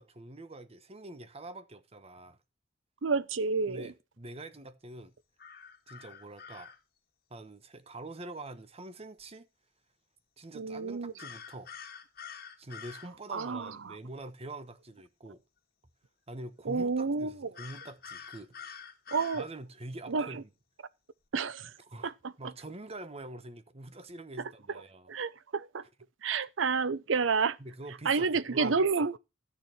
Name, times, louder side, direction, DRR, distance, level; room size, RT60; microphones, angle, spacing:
voice 1, 0.0-2.4 3.7-5.1 5.9-6.7 7.3-9.5 10.4-11.7 12.6-15.4 16.3-18.5 19.3-20.5 21.9-25.1 27.6-28.8, right 2 dB, 30° right, 1.1 m, -45 dB
voice 2, 3.0-3.9 10.5-11.1 13.3-13.9 16.7-17.3 19.1-19.5 20.1-20.4 21.3-21.7 22.0-22.3 25.1-25.8 26.2-27.6 28.1-29.2, right 4 dB, 75° right, 0.6 m, -30 dB
sound 1, 5.4-6.8 11.2-13.1 17.5-19.4, left 7 dB, 50° left, 2.1 m, -46 dB
13.0 x 6.8 x 4.3 m
head